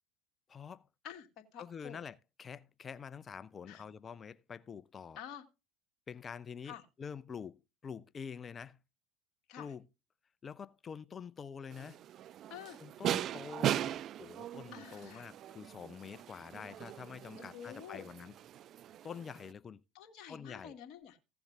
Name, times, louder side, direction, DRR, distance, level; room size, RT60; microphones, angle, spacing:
voice 1, 0.5-0.8 1.6-5.2 6.1-8.8 9.6-9.9 10.4-12.0 12.8-18.3 19.0-19.8 20.3-20.7, left 6 dB, 30° left, 0.6 m, -46 dB
voice 2, 1.5-2.0 3.7-3.8 5.2-5.4 6.6-6.8 9.5-9.7 12.5-12.8 14.7-15.3 17.4-18.0 19.9-21.2, left 9 dB, 50° left, 2.3 m, -48 dB
sound 1, 11.7-19.5, right 11 dB, 45° right, 0.4 m, -39 dB
16.0 x 7.1 x 3.5 m
hypercardioid pair, 75°, 0 cm